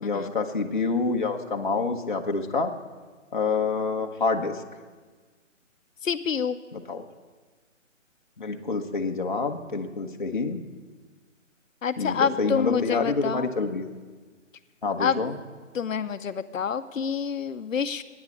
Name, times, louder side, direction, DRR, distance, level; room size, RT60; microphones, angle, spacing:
voice 1, 0.0-2.7 3.3-4.6 6.7-7.0 8.4-10.6 12.0-13.9 14.8-15.3, left 4 dB, 40° left, 2 dB, 1.0 m, -27 dB
voice 2, 6.0-6.6 11.8-13.5 15.0-15.2 15.7-18.0, left 7 dB, 85° left, 11 dB, 0.8 m, -27 dB
13.0 x 9.6 x 8.4 m, 1.4 s
hypercardioid pair, 175°, 38 cm